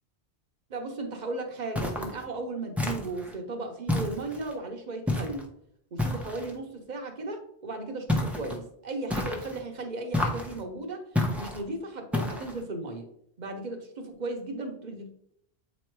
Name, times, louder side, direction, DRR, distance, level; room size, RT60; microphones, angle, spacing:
voice 1, 0.7-5.5 5.9-11.0 11.4-13.1 13.4-15.1, right 2 dB, 45° right, 4 dB, 1.0 m, -36 dB
sound 1, 1.7-2.2 2.8-3.3 3.9-4.5 5.1-5.5 6.0-6.5 8.1-8.6 9.1-9.6 10.1-10.6 11.1-11.6 12.1-12.6, left 1 dB, ahead, 0.7 m, -30 dB
8.0 x 3.1 x 4.6 m, 0.73 s
omnidirectional pair, 1.1 m